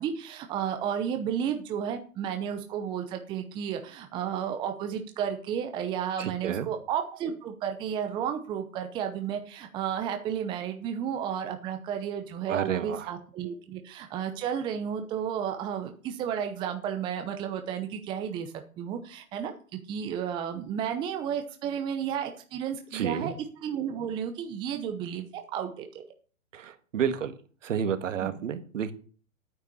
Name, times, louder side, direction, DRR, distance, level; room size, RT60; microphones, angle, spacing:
voice 1, 0.0-19.5 19.9-23.3 23.6-25.8 28.2-28.3, right 8 dB, 10° right, 6 dB, 0.7 m, -32 dB
voice 2, 6.2-6.7 12.5-13.1 22.9-23.3 26.5-27.3 27.6-28.9, right 8 dB, 60° right, 10 dB, 1.8 m, -30 dB
9.3 x 8.4 x 7.0 m, 0.41 s
hypercardioid pair, 145°, 42 cm